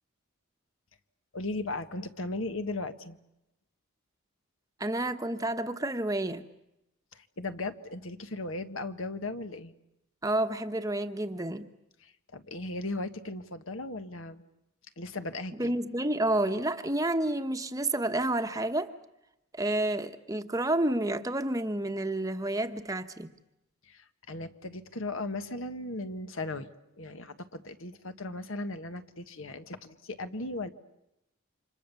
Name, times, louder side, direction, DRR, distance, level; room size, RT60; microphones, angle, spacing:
voice 1, 1.3-3.2 7.1-9.7 12.0-14.4 15.0-15.7 23.8-26.7 27.0-30.7, left 2 dB, 65° left, 9 dB, 1.6 m, -37 dB
voice 2, 4.8-6.4 10.2-11.7 15.6-18.9 19.5-23.3, right 1 dB, 15° right, 8 dB, 1.1 m, -30 dB
29.5 x 26.0 x 7.0 m, 0.88 s
head